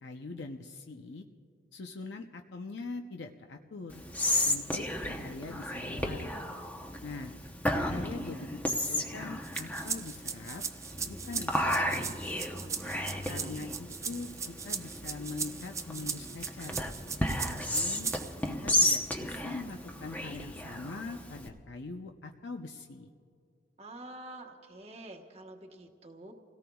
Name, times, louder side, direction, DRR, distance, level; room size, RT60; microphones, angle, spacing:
voice 1, 0.0-1.2 1.7-4.0 4.4-6.3 7.0-7.3 7.7-10.6 11.1-12.2 13.3-16.8 17.4-18.1 18.5-23.1, left 3 dB, 70° left, 4 dB, 0.6 m, -42 dB
Whispering, 3.9-21.5, left 1 dB, 10° left, 0.8 m, -33 dB
sound 1, 9.4-18.5, right 6 dB, 15° right, 0.3 m, -38 dB
voice 2, 12.8-13.6 23.8-26.3, right 2 dB, 35° right, 1 dB, 1.1 m, -48 dB
30.0 x 17.5 x 2.3 m, 2.4 s
head